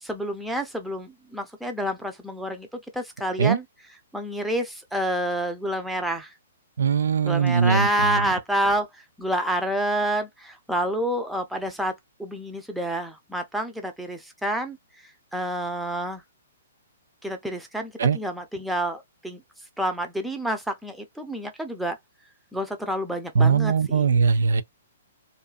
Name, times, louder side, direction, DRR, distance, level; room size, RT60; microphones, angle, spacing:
voice 1, 0.0-2.7 2.9-3.6 4.1-6.3 7.2-8.9 9.2-11.9 12.2-14.8 15.3-16.2 17.2-19.4 19.8-22.0 22.5-24.1, right 1 dB, ahead, 0.6 m, -28 dB
voice 2, 6.8-8.1 18.0-18.2 23.4-24.6, right 6 dB, 75° right, 0.4 m, -20 dB
2.6 x 2.4 x 2.4 m
hypercardioid pair, 130°, 0 cm